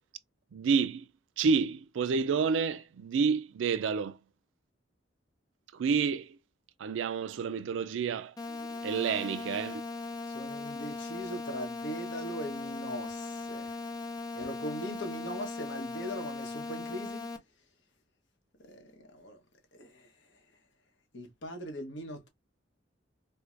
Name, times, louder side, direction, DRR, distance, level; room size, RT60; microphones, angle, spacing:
voice 1, 0.5-1.1 1.4-4.2 5.7-6.4 6.8-8.3 8.8-9.8, right 5 dB, 80° right, 0.4 m, -29 dB
sound 1, 8.4-17.4, left 3 dB, 20° left, 0.5 m, -39 dB
voice 2, 10.3-13.7 14.4-17.3 18.6-19.4 19.7-20.0 21.1-22.3, equal, 70° left, 1.1 m, -40 dB
4.6 x 2.2 x 2.4 m
head